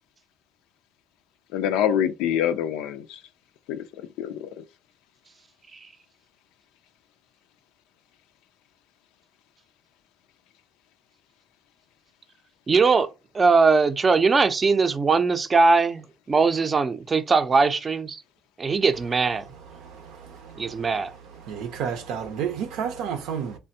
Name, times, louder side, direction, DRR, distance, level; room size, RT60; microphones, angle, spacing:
voice 1, 1.5-3.2 3.7-3.8 4.2-4.6, left 9 dB, 85° left, 0.3 m, -25 dB
voice 2, 12.7-13.1 13.3-18.2 18.6-19.4 20.6-21.1, right 4 dB, 35° right, 0.5 m, -20 dB
voice 3, 19.7-20.9 21.4-23.6, right 7 dB, 85° right, 0.6 m, -31 dB
3.3 x 2.2 x 2.6 m
supercardioid pair, 75°, 0 cm